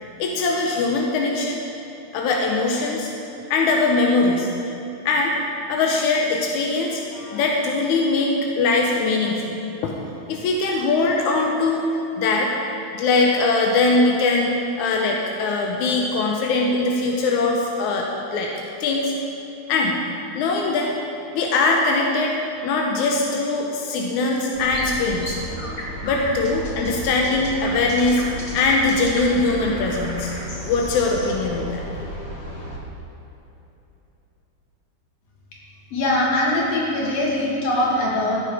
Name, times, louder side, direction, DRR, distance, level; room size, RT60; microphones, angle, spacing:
voice 1, 0.2-1.6 2.1-3.1 3.5-4.5 5.1-5.3 5.7-9.6 9.8-10.0 10.3-11.9 12.2-12.5 12.9-18.5 18.8-19.1 19.7-20.0 20.3-20.9 21.3-22.4 22.6-25.4 26.0-28.2 28.5-30.3 30.7-31.8, left 3 dB, 90° left, 0 dB, 2.3 m, -21 dB
sound 1, 24.5-32.8, equal, 30° left, 1.3 m, -32 dB
voice 2, 35.9-38.4, left 1 dB, 60° left, -4 dB, 3.5 m, -22 dB
15.5 x 8.6 x 4.9 m, 3.0 s
omnidirectional pair, 3.3 m